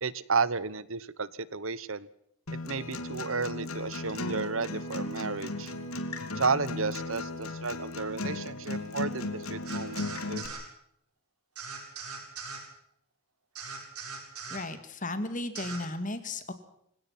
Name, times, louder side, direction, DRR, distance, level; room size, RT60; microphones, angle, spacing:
voice 1, 0.0-2.1 2.6-5.7 6.4-10.4, right 4 dB, 65° right, 19 dB, 1.2 m, -32 dB
Acoustic guitar, 2.5-10.5, left 2 dB, 75° left, 2.8 m, -36 dB
sound 1, 9.6-10.6 11.6-12.6 13.5-14.6 15.5-15.8, right 5 dB, 90° right, 7.3 m, -40 dB
voice 2, 14.5-16.5, left 2 dB, 35° left, 10 dB, 2.2 m, -35 dB
26.5 x 17.5 x 5.9 m, 0.70 s
head